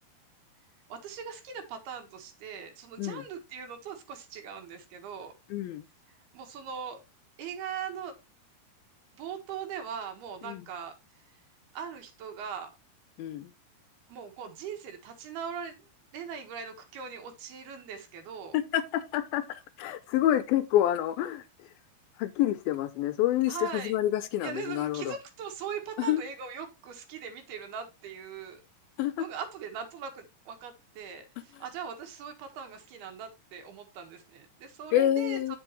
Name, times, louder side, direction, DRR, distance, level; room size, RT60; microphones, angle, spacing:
voice 1, 0.9-5.3 6.3-7.0 7.4-8.2 9.1-11.0 11.7-12.7 14.1-15.9 16.1-18.6 23.5-23.9 24.4-28.6 29.2-35.6, right 7 dB, 80° right, 3.5 m, -40 dB
voice 2, 5.5-5.9 10.4-10.6 13.2-13.5 18.5-21.7 22.2-25.1 26.0-26.2 29.0-29.2 31.5-31.6 34.9-35.6, left 12 dB, 80° left, 2.4 m, -28 dB
9.1 x 7.7 x 3.1 m
omnidirectional pair, 4.5 m